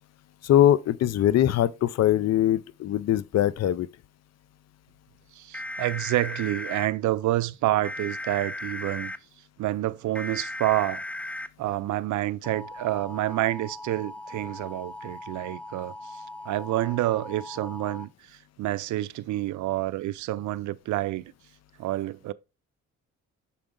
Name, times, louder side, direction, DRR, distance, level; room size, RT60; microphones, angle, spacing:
voice 1, 0.4-3.9, left 12 dB, 60° left, 0.5 m, -22 dB
voice 2, 5.3-9.1 9.6-11.0 11.6-21.2 21.8-22.3, right 15 dB, 75° right, 0.5 m, -28 dB
sound 1, 5.5-6.9 7.8-9.2 10.2-11.5 12.4-18.0, left 1 dB, 5° left, 0.5 m, -38 dB
7.1 x 4.9 x 3.7 m
cardioid pair, 90°, 30 cm